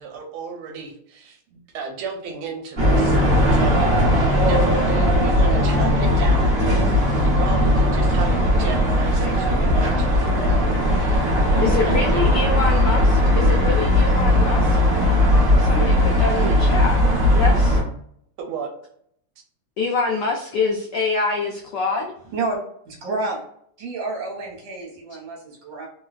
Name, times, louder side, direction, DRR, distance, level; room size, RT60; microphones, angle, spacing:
voice 1, 0.0-12.3 18.4-18.7, right 5 dB, 80° right, 2 dB, 1.5 m, -33 dB
sound 1, 2.8-17.8, left 1 dB, 35° right, 1.0 m, -18 dB
voice 2, 11.6-14.8 15.6-17.0 17.3-17.8 19.8-22.1, left 4 dB, 80° left, 1 dB, 0.9 m, -25 dB
voice 3, 22.9-23.4 23.8-25.9, right 3 dB, 60° right, -2 dB, 1.7 m, -29 dB
3.5 x 2.3 x 2.3 m, 0.67 s
omnidirectional pair, 2.4 m